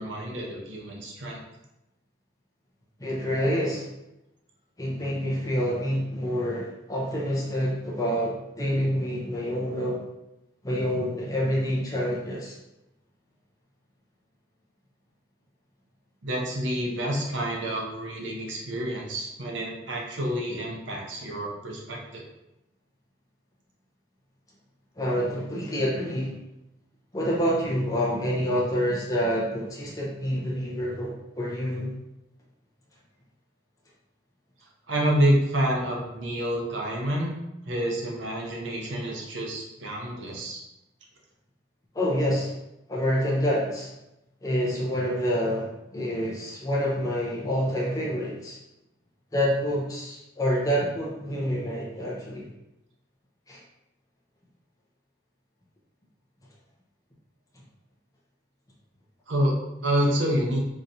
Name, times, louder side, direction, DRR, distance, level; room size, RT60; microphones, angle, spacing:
voice 1, 0.0-1.4 16.2-22.2 34.9-37.3 37.7-40.6 59.3-59.5 59.8-60.6, equal, 85° right, -1 dB, 0.8 m, -28 dB
voice 2, 3.0-3.8 4.8-10.0 10.6-12.5 25.0-26.4 27.1-31.9 41.9-42.5 42.9-43.9 44.4-48.6 49.3-52.5 53.5-53.6, equal, 20° left, -5 dB, 0.6 m, -27 dB
3.8 x 3.0 x 2.7 m, 0.90 s
head